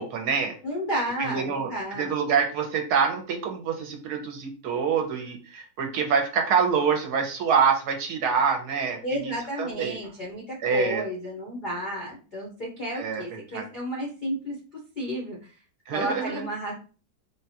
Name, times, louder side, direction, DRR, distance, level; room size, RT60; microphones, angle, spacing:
voice 1, 0.0-0.6 1.2-1.7 2.0-9.3 9.6-10.0 10.6-11.0 12.9-13.2 13.5-13.7 15.9-16.5, right 6 dB, 70° right, 3 dB, 1.1 m, -26 dB
voice 2, 0.6-2.1 9.0-14.5 15.0-15.6 15.9-16.7, equal, 55° left, -3 dB, 0.5 m, -32 dB
3.6 x 2.2 x 2.7 m, 0.36 s
omnidirectional pair, 1.9 m